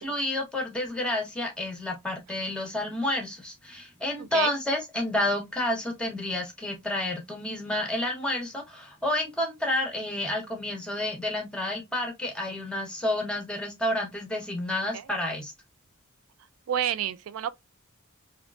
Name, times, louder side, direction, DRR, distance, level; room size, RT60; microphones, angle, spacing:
voice 1, 0.0-15.5, left 1 dB, 5° left, 0.9 m, -30 dB
voice 2, 4.2-4.5 14.9-15.0 16.7-17.5, right 10 dB, 70° right, 0.3 m, -29 dB
3.5 x 2.4 x 2.3 m
head